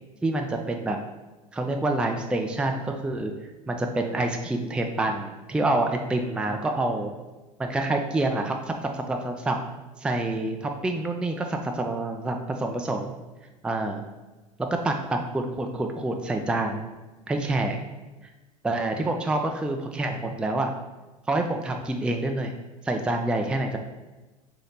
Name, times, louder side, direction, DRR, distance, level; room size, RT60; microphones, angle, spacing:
voice 1, 0.2-1.0 1.5-3.3 3.7-7.1 7.6-9.6 10.0-13.1 13.6-14.0 14.6-16.9 17.3-17.8 18.2-18.3 18.6-20.7 21.3-22.5 22.8-23.8, right 2 dB, 5° right, 3 dB, 0.4 m, -27 dB
3.2 x 2.8 x 4.0 m, 1.2 s
hypercardioid pair, 85°, 18 cm